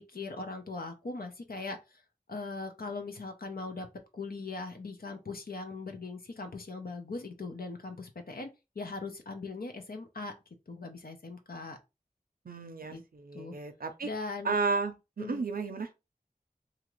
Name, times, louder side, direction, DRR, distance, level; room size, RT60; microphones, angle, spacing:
voice 1, 0.0-2.0 2.3-3.9 4.1-8.5 8.8-10.3 10.7-11.8 12.9-13.0 13.3-13.5 14.0-14.5 15.2-15.4, left 3 dB, 80° left, 0.7 m, -40 dB
voice 2, 12.5-14.1 14.4-15.9, right 4 dB, 80° right, 0.5 m, -33 dB
2.8 x 2.5 x 3.0 m
wide cardioid pair, 45°, 15 cm